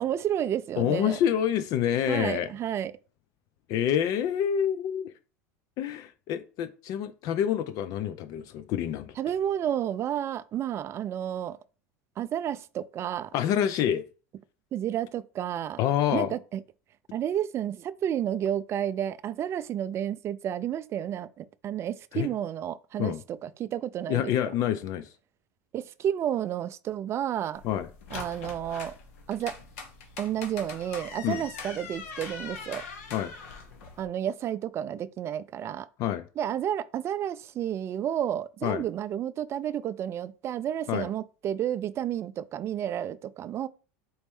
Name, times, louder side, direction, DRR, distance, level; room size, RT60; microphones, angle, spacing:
voice 1, 0.0-1.2 2.1-2.9 9.2-11.6 12.2-13.3 14.7-15.8 16.1-16.6 17.1-23.1 23.4-24.3 25.7-27.6 28.1-28.9 29.3-29.5 30.2-32.8 34.0-35.9 36.4-43.7, right 10 dB, 35° right, 0.4 m, -31 dB
voice 2, 0.8-2.5 3.7-5.1 5.8-9.1 13.3-14.0 15.8-16.3 22.1-22.3 23.0-23.2 24.1-25.1 27.6-27.9 31.2-31.4 33.1-33.3 36.0-36.3 38.6-38.8 40.9-41.1, left 10 dB, 50° left, 0.4 m, -27 dB
sound 1, 27.5-34.0, left 5 dB, 80° left, 1.1 m, -42 dB
4.1 x 3.1 x 3.5 m
hypercardioid pair, 105°, 8 cm